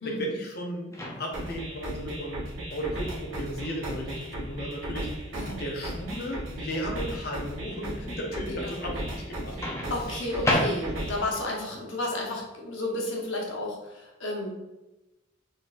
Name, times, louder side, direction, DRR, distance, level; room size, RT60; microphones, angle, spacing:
voice 1, 0.0-2.4 2.7-9.6, equal, 50° left, 0 dB, 0.8 m, -35 dB
Microwave oven, 0.9-1.6 3.6-3.8 9.6-11.2, left 1 dB, 15° left, 0.6 m, -30 dB
sound 1, 1.3-11.3, right 1 dB, 85° right, 1.2 m, -36 dB
voice 2, 9.9-14.6, left 1 dB, 75° left, -1 dB, 1.0 m, -32 dB
4.2 x 3.9 x 2.5 m, 0.99 s
head